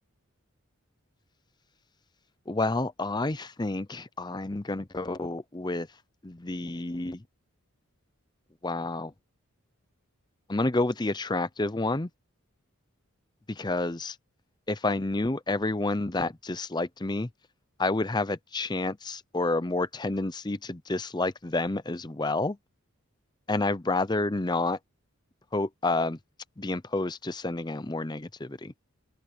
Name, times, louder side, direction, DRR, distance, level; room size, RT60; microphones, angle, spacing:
voice 1, 2.5-5.9 6.2-7.2 8.6-9.1 10.5-12.1 13.5-14.2 14.7-17.3 17.8-22.6 23.5-24.8 25.5-26.2 26.6-28.7, left 2 dB, 20° left, 0.6 m, -29 dB
open air
head